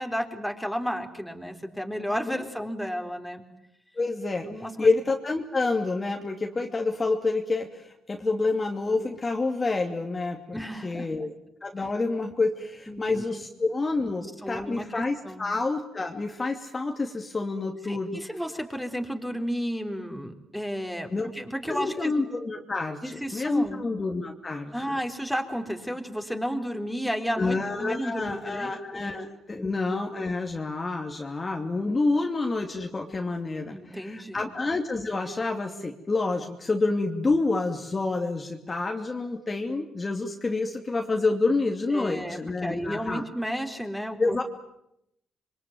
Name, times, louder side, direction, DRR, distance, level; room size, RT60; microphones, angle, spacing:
voice 1, 0.0-3.4 4.5-4.9 10.5-11.3 12.9-13.2 14.4-15.4 17.9-22.1 23.0-23.8 24.7-29.0 29.5-29.7 33.7-34.5 41.9-44.4, equal, ahead, 4 dB, 3.9 m, -33 dB
voice 2, 4.0-4.5 4.8-11.3 11.6-18.1 21.1-21.3 21.7-25.0 27.4-43.2 44.2-44.4, left 3 dB, 25° left, 3 dB, 2.7 m, -28 dB
27.0 x 23.0 x 9.5 m, 0.80 s
cardioid pair, 90°, 0 cm